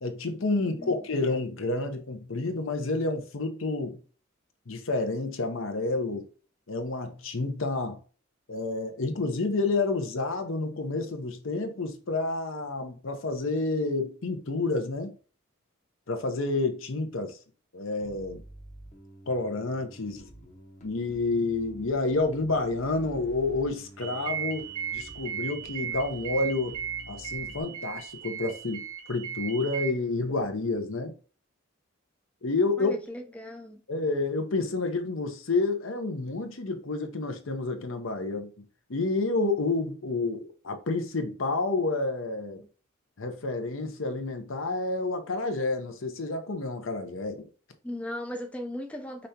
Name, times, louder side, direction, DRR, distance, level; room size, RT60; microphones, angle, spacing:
voice 1, 0.0-4.0 4.7-6.3 6.7-8.0 8.5-15.1 16.1-17.4 17.7-18.4 19.3-20.3 20.8-24.6 24.9-26.8 27.1-31.1 32.4-33.0 33.9-38.5 38.9-42.6 43.2-47.5, left 3 dB, 65° left, 0.8 m, -29 dB
voice 2, 0.6-1.0 32.8-33.8 47.8-49.3, left 1 dB, 5° left, 0.4 m, -37 dB
Bass guitar, 18.0-27.6, equal, 35° left, 0.9 m, -49 dB
sound 1, 24.0-29.9, right 9 dB, 85° right, 0.8 m, -36 dB
5.2 x 3.3 x 2.7 m
head